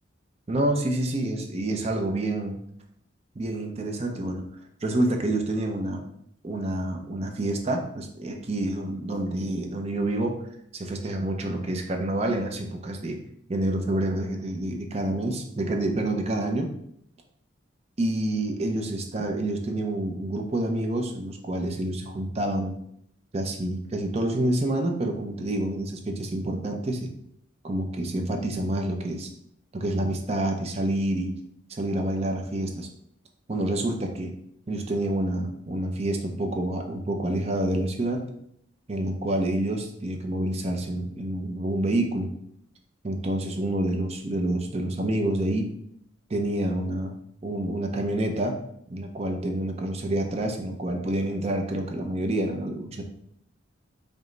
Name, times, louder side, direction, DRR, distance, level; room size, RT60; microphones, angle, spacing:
voice 1, 0.5-2.6 3.4-4.4 4.8-6.0 6.4-10.4 10.7-13.2 13.5-16.7 18.0-22.8 23.3-27.1 27.6-29.3 29.7-31.3 31.7-32.9 33.5-34.3 34.7-38.3 38.9-42.3 43.0-45.7 46.3-47.1 47.4-48.6 48.9-53.0, right 1 dB, 30° right, 3 dB, 0.5 m, -28 dB
5.2 x 2.1 x 3.8 m, 0.72 s
head